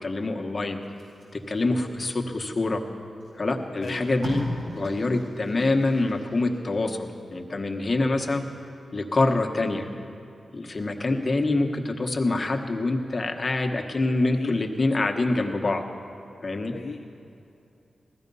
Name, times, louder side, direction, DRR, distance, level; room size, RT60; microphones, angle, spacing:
voice 1, 0.0-0.8 1.3-2.8 3.3-8.4 8.9-9.9 10.5-15.8 16.4-16.8, left 2 dB, 30° left, 3 dB, 1.1 m, -25 dB
Packing tape duct tape, 0.8-2.5 3.2-3.3 3.6-6.6 7.0-7.2, left 1 dB, 80° right, 4.3 m, -38 dB
voice 2, 3.8-4.1 11.0-11.2 14.2-14.6 16.7-17.1, left 4 dB, 55° left, 2 dB, 0.5 m, -36 dB
16.0 x 13.0 x 5.4 m, 2.8 s
wide cardioid pair, 125°, 0 cm